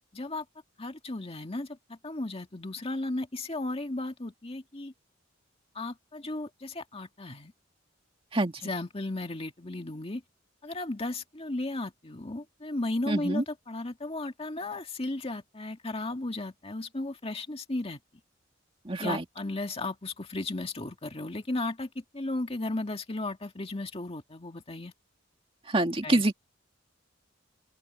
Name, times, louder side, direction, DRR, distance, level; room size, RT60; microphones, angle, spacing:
voice 1, 0.1-0.4 0.8-4.9 5.7-7.5 8.6-10.2 10.6-18.0 19.0-24.9 26.0-26.2, left 2 dB, 30° left, 1.9 m, -35 dB
voice 2, 13.1-13.4 18.9-19.2 25.7-26.3, right 2 dB, 30° right, 2.2 m, -26 dB
open air
head